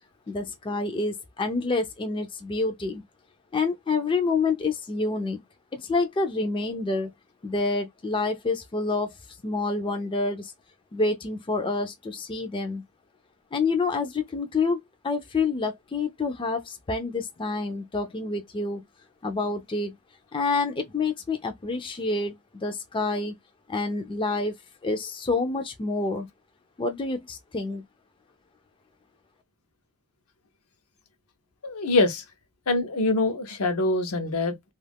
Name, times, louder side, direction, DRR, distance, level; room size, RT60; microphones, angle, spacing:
voice 1, 0.3-3.0 3.5-5.4 5.7-7.1 7.4-9.1 9.4-10.5 10.9-12.8 13.5-14.8 15.0-18.8 19.2-19.9 20.3-23.3 23.7-24.5 24.8-26.3 26.8-27.8, left 3 dB, 20° left, 0.4 m, -28 dB
voice 2, 31.6-32.2 32.7-34.7, left 2 dB, 70° left, 0.6 m, -24 dB
2.4 x 2.2 x 3.4 m
head